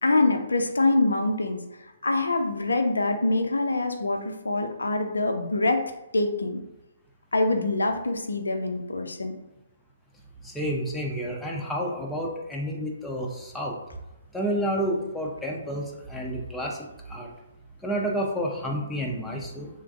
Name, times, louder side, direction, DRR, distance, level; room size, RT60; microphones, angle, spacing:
voice 1, 0.0-1.6 2.0-5.8 6.1-6.6 7.3-9.4, left 2 dB, 75° left, 5 dB, 0.3 m, -25 dB
voice 2, 10.4-13.7 14.3-17.3 17.8-19.7, equal, 5° left, -2 dB, 0.4 m, -30 dB
3.1 x 2.3 x 2.3 m, 0.98 s
figure-of-eight pair, 130°, 0 cm